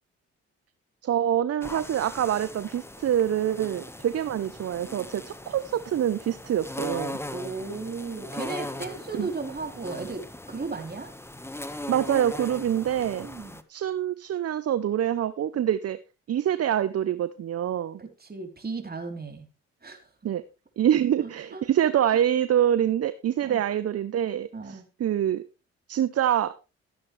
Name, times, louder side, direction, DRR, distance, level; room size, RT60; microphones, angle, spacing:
voice 1, 1.0-7.2 9.1-9.3 11.9-13.3 13.7-16.0 16.3-18.0 20.2-20.4 20.8-25.4 25.9-26.5, right 10 dB, 55° right, 14 dB, 0.8 m, -25 dB
sound 1, 1.6-13.6, left 1 dB, 10° left, 1.4 m, -39 dB
voice 2, 7.3-11.1 13.2-13.6 18.0-19.5 19.8-20.1 20.9-21.6 23.4-23.6 24.5-24.9, right 4 dB, 30° right, 5 dB, 3.7 m, -36 dB
14.0 x 10.5 x 3.3 m, 0.29 s
supercardioid pair, 55°, 30 cm